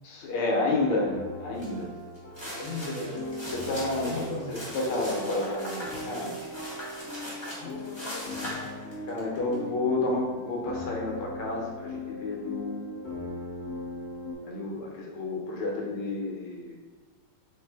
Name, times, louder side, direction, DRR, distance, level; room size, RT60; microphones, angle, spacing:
voice 1, 0.0-1.9 2.5-3.0 3.5-6.4 9.1-13.0 14.4-16.8, left 2 dB, 80° left, -1 dB, 1.6 m, -30 dB
sound 1, 0.6-14.3, left 1 dB, 45° left, 0.9 m, -39 dB
sound 2, 1.6-1.8 2.2-9.5, equal, 15° left, 0.9 m, -40 dB
voice 2, 2.4-3.2 4.0-4.7 7.5-8.8, left 2 dB, 65° left, -2 dB, 1.3 m, -39 dB
3.6 x 3.2 x 3.3 m, 1.4 s
omnidirectional pair, 2.4 m